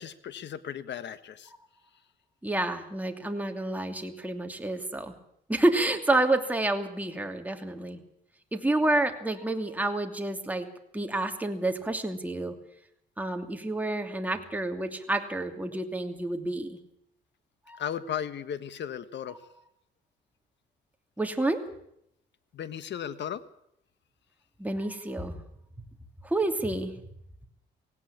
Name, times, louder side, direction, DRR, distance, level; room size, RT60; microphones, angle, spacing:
voice 1, 0.0-1.5 17.8-19.4 22.5-23.4, left 9 dB, 65° left, 14 dB, 1.4 m, -35 dB
voice 2, 2.4-5.1 5.5-8.0 8.5-10.7 10.9-12.5 13.2-16.8 17.7-17.8 21.2-21.6 24.6-25.4 26.2-26.9, right 2 dB, 10° right, 4 dB, 2.7 m, -29 dB
17.5 x 17.5 x 8.7 m, 0.74 s
cardioid pair, 90°, 20 cm